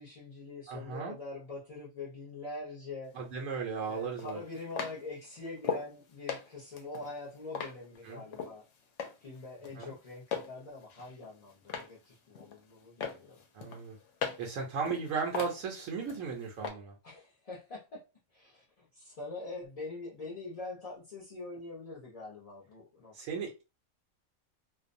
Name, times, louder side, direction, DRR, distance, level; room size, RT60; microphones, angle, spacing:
voice 1, 0.0-3.1 3.8-8.7 9.2-13.4 17.0-23.4, left 3 dB, 40° left, 0.5 m, -44 dB
voice 2, 0.7-1.1 3.1-4.4 8.0-8.2 9.8-9.9 13.5-14.0 14.4-16.9 23.1-23.6, right 5 dB, 75° right, 1.0 m, -36 dB
sound 1, 3.1-3.2 4.2-5.9 6.3-8.6 9.0-9.4 9.6-10.5 10.9-12.0 12.3-12.7 13.0-14.5 14.9-16.2 16.6-16.7, left 7 dB, 70° left, 0.8 m, -38 dB
2.5 x 2.1 x 2.5 m
omnidirectional pair, 1.4 m